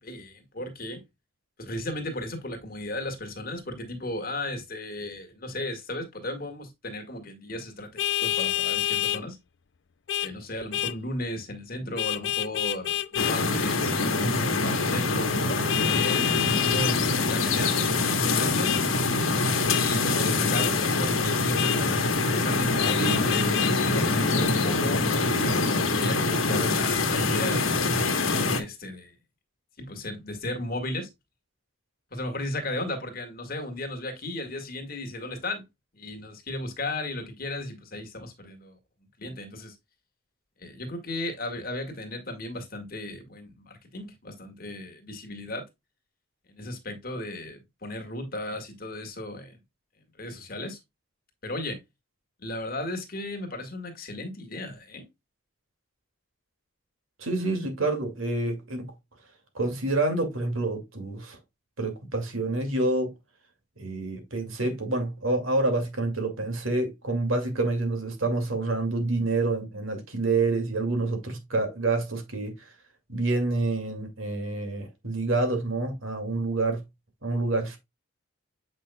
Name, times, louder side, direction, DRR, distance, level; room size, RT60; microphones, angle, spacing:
voice 1, 0.0-1.0 1.6-9.4 10.2-18.7 19.7-27.7 28.5-29.2 29.8-31.1 32.1-35.7 35.9-38.8 39.2-39.8 40.6-45.7 46.5-49.6 50.2-50.8 51.4-51.8 52.4-55.1, left 1 dB, 45° left, 1.8 m, -35 dB
Vehicle horn car horn honking, 8.0-9.2 10.1-10.3 10.7-11.0 12.0-13.4 15.7-17.0 18.6-18.8 19.7-19.8 20.5-20.7 21.6-21.8 22.8-23.7, left 13 dB, 60° left, 0.4 m, -28 dB
sound 1, 13.2-28.6, left 3 dB, 85° left, 1.3 m, -24 dB
voice 2, 57.2-58.9 59.5-61.4 61.8-63.1 63.8-72.5 73.1-76.8 77.2-77.8, right 2 dB, 90° right, 2.3 m, -27 dB
8.3 x 5.5 x 2.3 m
head